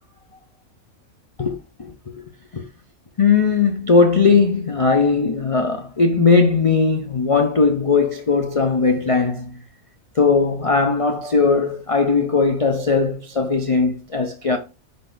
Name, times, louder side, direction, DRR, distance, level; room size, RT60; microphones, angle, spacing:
voice 1, 1.4-1.9 2.5-2.6 3.2-9.5 10.2-14.6, left 4 dB, 50° left, 0.4 m, -18 dB
10.0 x 4.0 x 2.5 m
omnidirectional pair, 1.5 m